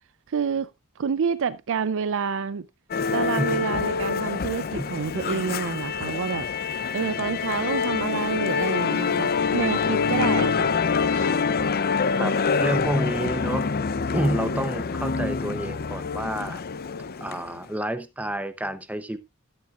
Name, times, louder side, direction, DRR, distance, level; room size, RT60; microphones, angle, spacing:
voice 1, 0.3-0.7 1.0-2.7 3.1-6.5 6.9-10.7 11.1-11.3, right 6 dB, 60° right, 0.5 m, -28 dB
Musical instrument, 2.9-17.6, left 5 dB, 45° left, 0.6 m, -26 dB
voice 2, 3.3-3.7 4.7-4.9 12.2-13.7 14.1-16.6 17.2-19.2, right 1 dB, 5° right, 0.7 m, -29 dB
13.0 x 9.6 x 2.4 m
head